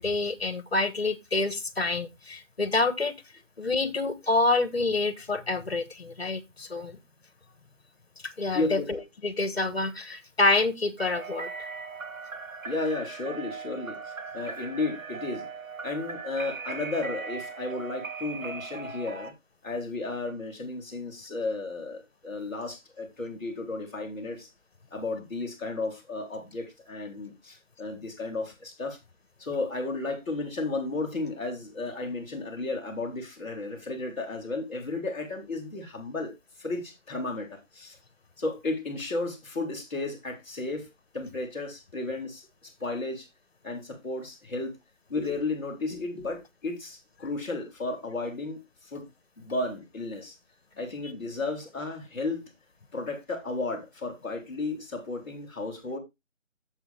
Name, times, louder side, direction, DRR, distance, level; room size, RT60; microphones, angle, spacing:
voice 1, 0.0-3.2 3.6-7.0 8.2-11.7, left 2 dB, 50° left, 1.3 m, -27 dB
voice 2, 8.5-8.9 12.6-15.5 15.8-19.3 19.6-24.5 24.9-29.0 29.4-36.3 36.6-38.0 38.4-40.9 41.1-43.3 43.6-44.7 45.1-49.0 49.4-50.3 50.8-52.5 52.9-56.0, left 3 dB, 10° left, 1.7 m, -33 dB
sound 1, 11.0-19.3, right 4 dB, 85° right, 1.4 m, -39 dB
8.1 x 7.1 x 3.4 m
figure-of-eight pair, 175°, 40 cm